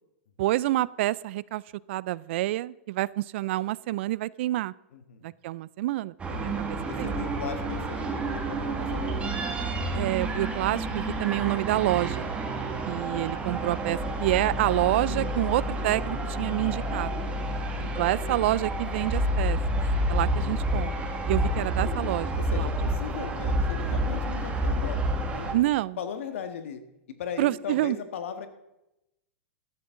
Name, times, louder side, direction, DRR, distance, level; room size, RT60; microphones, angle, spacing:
voice 1, 0.4-1.6 1.9-4.7 5.2-7.1 9.9-12.3 12.8-17.1 17.9-19.6 20.1-21.0 21.3-22.7 25.5-26.0 27.4-28.0, right 16 dB, 60° right, 22 dB, 0.4 m, -28 dB
voice 2, 4.9-5.3 6.7-9.3 12.6-13.0 17.4-17.9 22.4-25.0 25.3-25.7 26.0-26.8 27.1-28.5, left 7 dB, 75° left, 9 dB, 1.6 m, -38 dB
sound 1, 6.2-25.5, right 1 dB, 15° right, 1.9 m, -29 dB
14.0 x 11.0 x 3.8 m, 0.90 s
hypercardioid pair, 130°, 7 cm